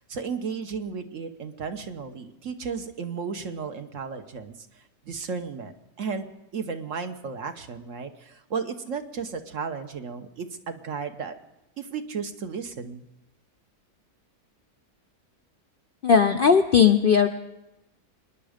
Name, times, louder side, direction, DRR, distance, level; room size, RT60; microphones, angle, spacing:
voice 1, 0.1-4.5 5.1-5.7 6.0-6.3 6.5-11.3 11.8-13.0, right 5 dB, 60° right, 7 dB, 1.3 m, -34 dB
voice 2, 16.0-17.3, left 6 dB, 55° left, 6 dB, 0.6 m, -18 dB
25.5 x 10.5 x 5.0 m, 0.91 s
omnidirectional pair, 1.6 m